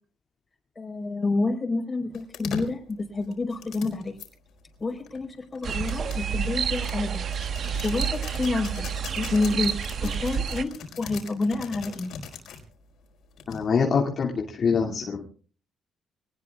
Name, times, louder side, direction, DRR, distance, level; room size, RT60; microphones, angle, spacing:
voice 1, 0.8-4.2 4.8-7.3 7.8-8.9 9.2-9.7 10.0-12.1, left 3 dB, 30° left, 4 dB, 4.5 m, -28 dB
sound 1, 2.1-4.3 5.1-12.6 13.4-13.9, left 6 dB, 75° left, 4.9 m, -40 dB
sound 2, 5.6-10.6, right 7 dB, 60° right, 1.2 m, -29 dB
voice 2, 13.5-15.3, left 5 dB, 55° left, -1 dB, 2.3 m, -25 dB
25.0 x 19.5 x 2.4 m, 0.42 s
cardioid pair, 90°, 0 cm